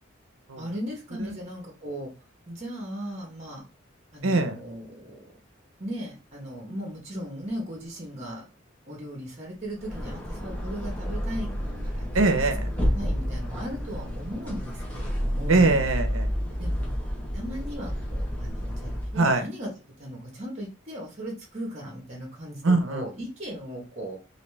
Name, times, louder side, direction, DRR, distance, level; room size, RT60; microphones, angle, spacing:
voice 1, 0.6-2.1 2.5-3.6 4.1-5.3 5.8-8.4 8.9-11.5 11.8-12.1 12.9-15.8 16.6-16.9 17.3-24.2, equal, 35° right, 0 dB, 1.1 m, -37 dB
voice 2, 4.2-4.5 12.1-12.7 15.5-16.3 19.2-19.4 22.6-23.0, right 3 dB, 80° right, 7 dB, 0.8 m, -22 dB
sound 1, 9.7-19.2, equal, 5° left, 1.2 m, -30 dB
4.0 x 2.7 x 3.3 m, 0.29 s
head